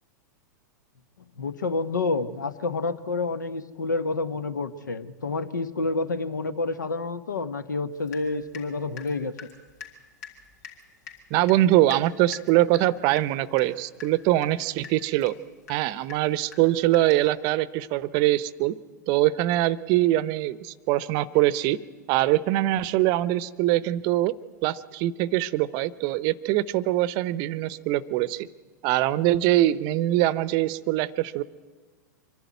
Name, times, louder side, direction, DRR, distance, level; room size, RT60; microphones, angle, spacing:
voice 1, 1.4-9.3, left 3 dB, 80° left, 14 dB, 1.1 m, -29 dB
Water tap faucet / Drip, 8.1-8.7 9.0-17.3, left 6 dB, 60° left, 3.8 m, -45 dB
voice 2, 11.3-15.3 15.7-18.7 19.1-21.8 22.1-24.3 24.6-28.5 28.8-31.4, right 15 dB, 40° right, 19 dB, 0.7 m, -23 dB
25.0 x 12.0 x 9.5 m, 1.4 s
figure-of-eight pair, 100°, 10 cm